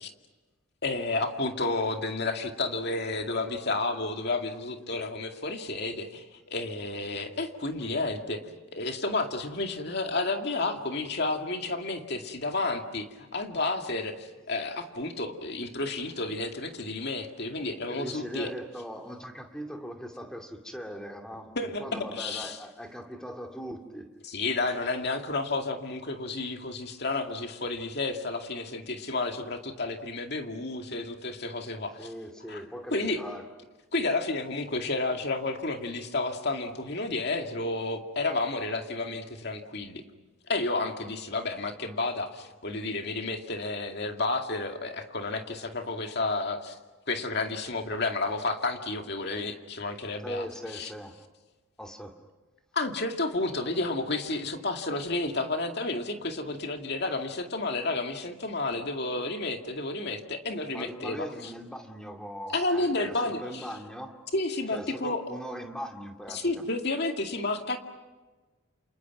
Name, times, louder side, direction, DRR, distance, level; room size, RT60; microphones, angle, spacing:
voice 1, 0.8-18.5 21.6-22.6 24.2-32.1 32.5-32.6 32.9-33.2 33.9-40.0 40.5-46.8 47.1-50.5 50.7-50.9 52.7-61.5 62.5-63.7 64.3-65.2 66.3-67.8, left 2 dB, 50° left, 4 dB, 2.3 m, -31 dB
voice 2, 17.9-24.1 32.0-33.5 50.2-51.2 51.8-52.2 60.7-64.1 64.7-66.5, equal, 5° left, 3 dB, 2.4 m, -40 dB
29.5 x 27.5 x 6.1 m, 1.2 s
head